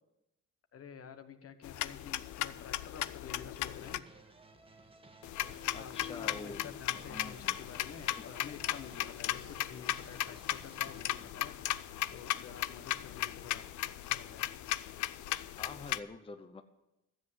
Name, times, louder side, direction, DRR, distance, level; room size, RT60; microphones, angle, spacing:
voice 1, 0.7-4.1 5.3-14.6, left 7 dB, 50° left, 8 dB, 1.2 m, -50 dB
sound 1, 1.6-4.0 5.2-16.0, left 14 dB, 75° left, 0.5 m, -37 dB
sound 2, 3.6-11.3, right 2 dB, 20° right, 1.4 m, -58 dB
voice 2, 5.7-6.7 6.9-7.6 8.2-8.3 15.5-16.6, left 3 dB, 20° left, 8 dB, 0.7 m, -46 dB
12.5 x 7.7 x 8.0 m, 0.93 s
cardioid pair, 90°, 30 cm